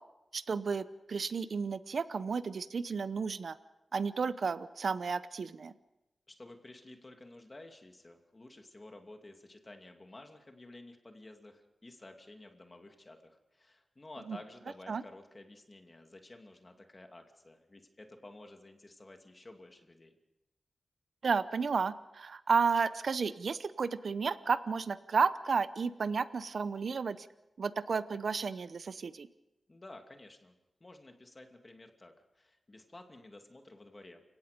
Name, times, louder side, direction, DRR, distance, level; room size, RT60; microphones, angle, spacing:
voice 1, 0.3-3.6 3.9-5.7 14.3-14.4 14.9-15.0 21.2-27.3 27.6-29.3, right 5 dB, 70° right, 13 dB, 0.8 m, -32 dB
voice 2, 6.3-20.1 29.7-30.5 30.8-34.2, left 2 dB, 30° left, 4 dB, 2.5 m, -52 dB
30.0 x 17.5 x 5.2 m, 0.92 s
wide cardioid pair, 85°, 0 cm